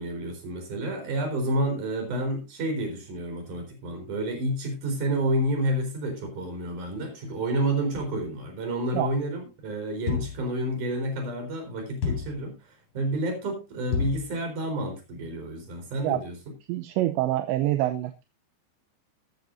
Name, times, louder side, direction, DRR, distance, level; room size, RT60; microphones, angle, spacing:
voice 1, 0.0-12.6 12.9-16.4, right 1 dB, 45° right, 4 dB, 5.3 m, -29 dB
sound 1, 10.1-10.5 12.0-12.4 13.9-14.3, left 5 dB, 35° left, 3.9 m, -29 dB
voice 2, 16.7-18.1, right 15 dB, 80° right, 9 dB, 2.9 m, -26 dB
13.5 x 13.0 x 2.7 m, 0.26 s
omnidirectional pair, 5.4 m